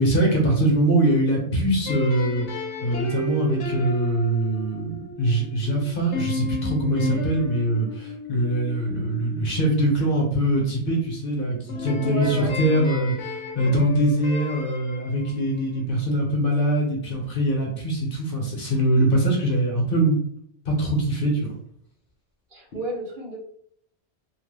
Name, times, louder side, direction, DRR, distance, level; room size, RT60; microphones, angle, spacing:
voice 1, 0.0-2.5 2.8-20.2 20.7-21.5, right 1 dB, 55° left, -1 dB, 1.0 m, -23 dB
sound 1, 1.8-10.7 11.7-16.2, left 2 dB, 85° left, 1.0 m, -34 dB
voice 2, 12.0-12.5 22.5-23.4, right 2 dB, 50° right, -3 dB, 1.0 m, -30 dB
2.9 x 2.2 x 3.2 m, 0.65 s
omnidirectional pair, 1.1 m